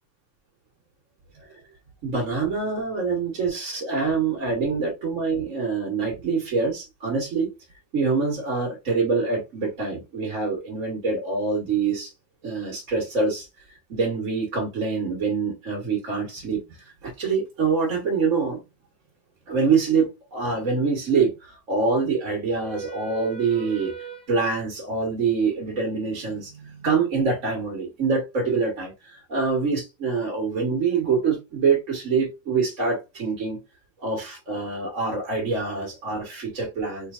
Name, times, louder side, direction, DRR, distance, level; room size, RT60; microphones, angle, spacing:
voice 1, 2.0-7.5 7.9-12.1 12.4-13.5 13.9-18.6 19.5-33.6 34.0-37.1, right 4 dB, 45° right, 1.2 m, -25 dB
4.5 x 3.0 x 2.4 m
omnidirectional pair, 2.3 m